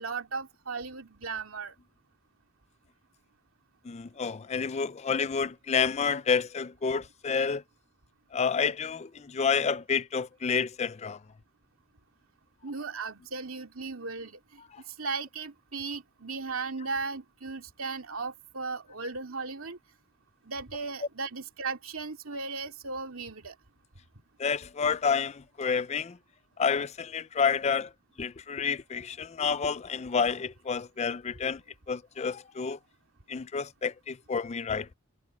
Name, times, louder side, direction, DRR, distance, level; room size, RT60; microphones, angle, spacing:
voice 1, 0.0-1.7 12.6-14.4 15.0-19.8 20.4-23.5, right 4 dB, 85° right, 2.5 m, -36 dB
voice 2, 3.9-7.6 8.3-11.2 24.4-26.2 26.6-27.9 28.2-31.6 31.9-32.8 33.3-34.9, left 6 dB, 30° left, 0.4 m, -29 dB
head